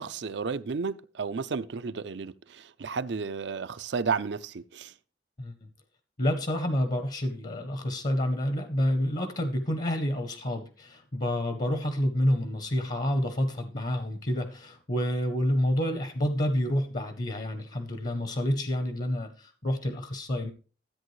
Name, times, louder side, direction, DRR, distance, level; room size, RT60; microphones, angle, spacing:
voice 1, 0.0-4.9, right 5 dB, 80° right, 0.5 m, -32 dB
voice 2, 5.4-5.7 6.2-20.5, equal, 45° left, 0.8 m, -28 dB
13.5 x 8.6 x 3.2 m
head